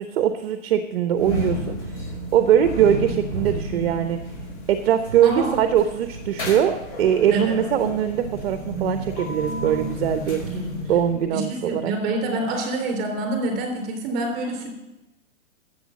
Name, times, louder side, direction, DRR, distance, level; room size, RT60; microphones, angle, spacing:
voice 1, 0.0-1.8 2.3-4.2 4.7-10.4 10.9-11.9, right 9 dB, 50° right, 8 dB, 0.9 m, -21 dB
sound 1, 1.1-11.3, equal, 35° left, 5.5 m, -32 dB
voice 2, 10.3-10.8 11.3-14.7, right 2 dB, 25° right, 3 dB, 3.5 m, -27 dB
11.5 x 8.0 x 7.4 m, 0.99 s
hypercardioid pair, 160°, 39 cm